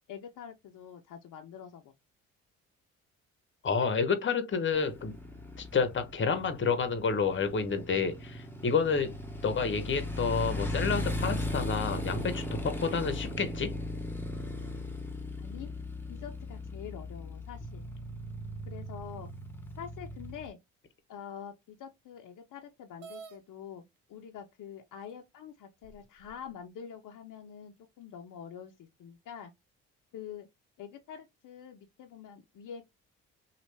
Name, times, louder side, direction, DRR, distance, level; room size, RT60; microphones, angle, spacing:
voice 1, 0.1-1.9 15.4-15.7 16.1-17.9 18.6-19.3 19.8-20.6 21.1-29.5 30.1-30.5 30.8-32.8, left 8 dB, 60° left, 0.7 m, -46 dB
voice 2, 3.6-5.1 5.6-9.1 9.4-13.7, left 5 dB, 35° left, 0.9 m, -29 dB
Motorcycle, 4.7-20.5, left 1 dB, 5° left, 1.1 m, -37 dB
sound 1, 23.0-23.4 24.4-24.5 25.1-25.2 25.8-26.5, right 6 dB, 65° right, 0.9 m, -48 dB
3.1 x 2.4 x 3.2 m
hypercardioid pair, 55°, 35 cm